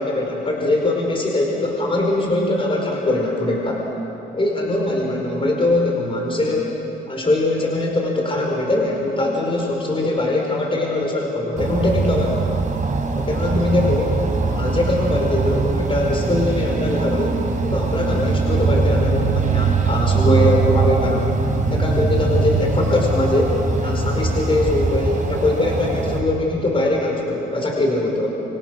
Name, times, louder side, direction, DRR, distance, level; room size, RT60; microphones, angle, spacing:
voice 1, 0.0-3.8 4.3-6.7 7.1-12.6 13.1-14.2 14.5-17.4 17.6-21.3 21.7-23.5 23.8-28.3, left 2 dB, 25° left, -1 dB, 5.0 m, -21 dB
sound 1, 11.6-26.2, right 4 dB, 40° right, 3.8 m, -21 dB
28.0 x 26.0 x 6.4 m, 3.0 s
cardioid pair, 90°, 20 cm